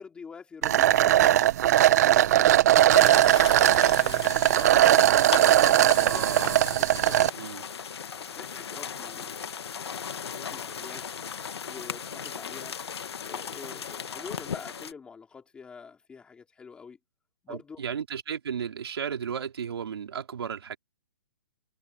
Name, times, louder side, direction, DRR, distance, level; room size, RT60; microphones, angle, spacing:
voice 1, 0.0-1.4 1.7-2.6 2.8-6.2 6.8-7.3 8.1-9.5 9.9-11.0 11.6-12.8 13.2-17.0 17.4-17.9, left 5 dB, 5° left, 3.1 m, -46 dB
sound 1, 0.6-7.3, right 13 dB, 40° right, 1.1 m, -20 dB
sound 2, 2.9-14.9, left 7 dB, 85° left, 1.7 m, -37 dB
voice 2, 6.0-6.7 7.4-7.6 17.5-20.8, right 7 dB, 75° right, 3.4 m, -34 dB
hypercardioid pair, 165°, 13 cm